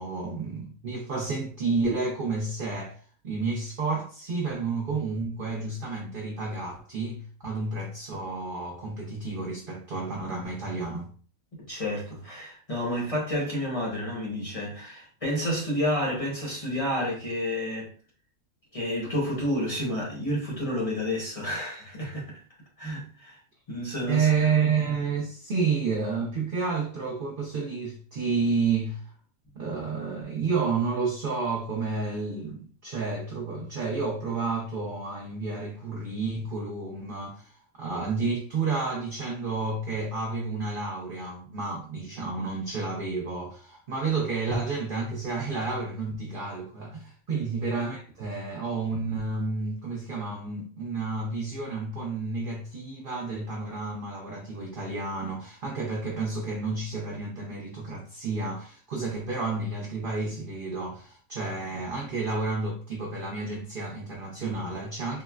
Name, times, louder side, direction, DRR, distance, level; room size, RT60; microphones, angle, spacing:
voice 1, 0.0-3.0 3.2-11.1 24.1-29.1 29.6-65.2, right 4 dB, 65° right, 0.5 m, -30 dB
voice 2, 11.7-17.9 18.7-22.3 22.8-23.4 23.7-24.3 47.3-47.4, left 1 dB, 35° left, 0.6 m, -30 dB
3.7 x 2.1 x 2.3 m
omnidirectional pair, 1.5 m